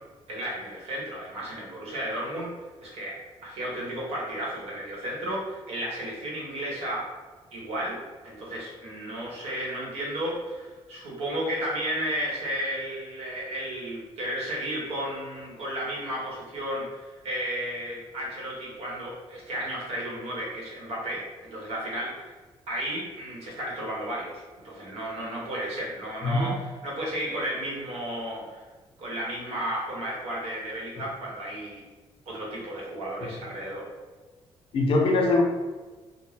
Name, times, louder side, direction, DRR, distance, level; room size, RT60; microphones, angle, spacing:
voice 1, 0.3-2.5 2.8-7.1 7.5-22.3 22.7-28.6 29.0-31.8 32.3-33.9, right 1 dB, 75° right, -4 dB, 1.0 m, -33 dB
voice 2, 26.2-26.6 34.7-35.4, left 2 dB, 60° left, 1 dB, 0.5 m, -22 dB
2.5 x 2.1 x 3.3 m, 1.3 s
cardioid pair, 160°, 11 cm